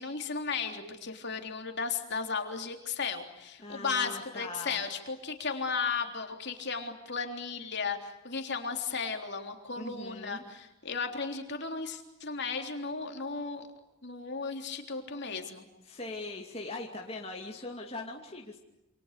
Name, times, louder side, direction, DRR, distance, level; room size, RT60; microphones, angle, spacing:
voice 1, 0.0-13.7 14.0-15.6, left 5 dB, 50° left, 4 dB, 3.5 m, -35 dB
voice 2, 3.6-4.8 9.8-10.4 15.8-18.6, left 2 dB, 25° left, 0 dB, 2.7 m, -41 dB
28.5 x 28.5 x 6.7 m, 0.95 s
head